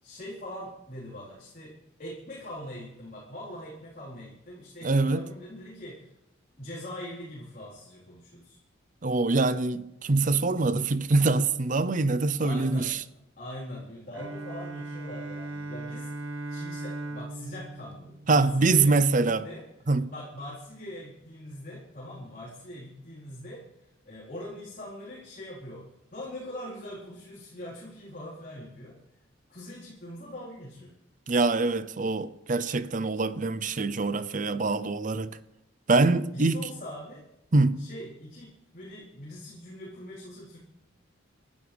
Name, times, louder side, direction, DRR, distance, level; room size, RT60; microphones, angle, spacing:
voice 1, 0.0-6.1 6.6-8.6 12.4-13.0 13.4-19.7 20.1-23.6 24.0-29.0 29.5-30.9 36.3-37.3 37.8-40.6, left 1 dB, 45° left, 4.3 m, -42 dB
voice 2, 4.8-5.2 9.0-13.0 18.3-19.5 19.9-20.1 31.3-35.3 35.9-36.6 37.5-37.8, right 3 dB, 40° right, 0.6 m, -24 dB
Bowed string instrument, 14.1-19.0, right 2 dB, 80° right, 1.0 m, -38 dB
27.5 x 12.5 x 3.5 m
head